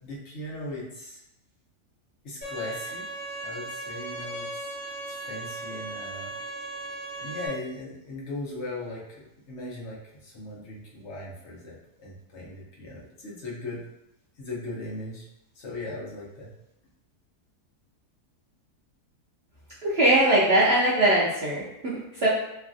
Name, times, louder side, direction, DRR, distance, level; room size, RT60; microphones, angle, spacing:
voice 1, 0.0-1.2 2.2-3.0 3.4-4.5 5.1-6.3 7.2-13.8 14.4-15.3 15.6-16.5, left 2 dB, 55° left, -5 dB, 0.9 m, -38 dB
Bowed string instrument, 2.4-7.5, right 2 dB, 10° left, 0.6 m, -37 dB
voice 2, 19.8-22.3, right 1 dB, 75° right, -7 dB, 0.5 m, -21 dB
3.1 x 2.3 x 2.5 m, 0.86 s
omnidirectional pair, 1.7 m